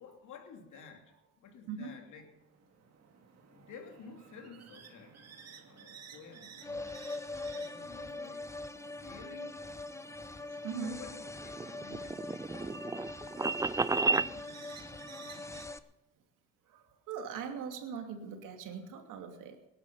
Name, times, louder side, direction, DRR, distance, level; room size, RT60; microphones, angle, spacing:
voice 1, 0.0-2.3 3.5-5.2 5.6-7.0 7.4-8.5 9.0-9.6 10.8-12.8 14.0-15.5, left 5 dB, 70° left, 3 dB, 3.0 m, -53 dB
sound 1, 2.3-15.6, right 6 dB, 50° right, 2.3 m, -55 dB
sound 2, 6.6-15.8, left 2 dB, 10° left, 0.8 m, -43 dB
voice 2, 10.6-11.0 13.2-14.0 15.1-15.5 16.7-19.6, right 6 dB, 80° right, 4 dB, 2.6 m, -42 dB
sound 3, 11.3-14.3, right 4 dB, 10° right, 0.4 m, -32 dB
19.0 x 11.0 x 5.6 m, 0.92 s
cardioid pair, 90°, 32 cm